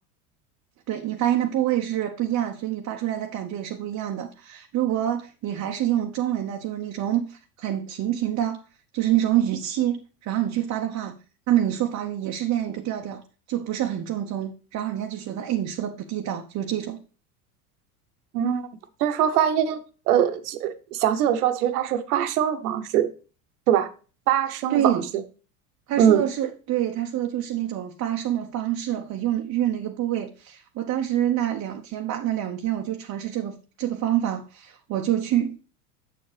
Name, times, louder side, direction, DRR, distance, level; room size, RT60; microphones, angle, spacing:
voice 1, 0.9-8.6 8.9-11.1 11.5-13.2 13.5-17.0 24.7-25.1 25.9-35.6, right 11 dB, 40° right, 0.9 m, -26 dB
voice 2, 19.0-19.8 20.1-23.1 23.7-23.9 24.3-25.0 26.0-26.2, right 10 dB, 75° right, 1.1 m, -22 dB
7.3 x 7.2 x 3.3 m
hypercardioid pair, 90°, 45 cm